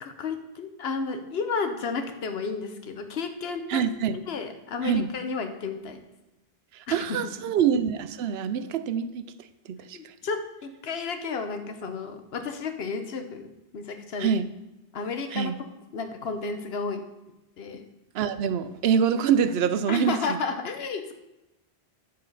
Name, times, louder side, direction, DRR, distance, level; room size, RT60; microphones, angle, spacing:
voice 1, 0.0-3.8 4.3-6.0 6.9-7.0 7.2-7.3 9.9-14.3 14.9-15.5 15.9-17.0 17.6-17.9 19.9-21.1, left 4 dB, 75° left, 8 dB, 1.1 m, -32 dB
voice 2, 3.7-4.2 4.8-5.1 6.7-10.1 14.2-14.5 15.3-15.5 18.1-20.4, right 7 dB, 80° right, 12 dB, 0.8 m, -25 dB
10.5 x 6.7 x 4.0 m, 0.97 s
omnidirectional pair, 1.0 m